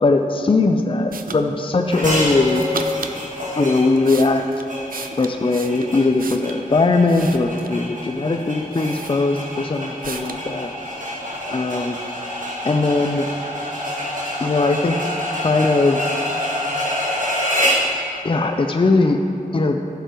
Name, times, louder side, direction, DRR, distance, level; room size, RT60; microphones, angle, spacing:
voice 1, 0.0-2.8 3.6-4.4 5.2-10.7 11.5-12.0 12.6-13.3 14.4-15.0 15.3-16.1 18.2-19.2 19.5-19.8, left 3 dB, 40° left, 5 dB, 0.5 m, -19 dB
sound 1, 1.1-1.4 2.5-3.2 3.8-6.6 7.1-7.9 8.4-8.5 8.7-9.6 10.0-10.4, right 5 dB, 80° right, 0.5 m, -35 dB
sound 2, 1.9-17.9, left 1 dB, 65° right, 2.3 m, -27 dB
15.5 x 6.8 x 3.1 m, 2.8 s
wide cardioid pair, 65°, 14 cm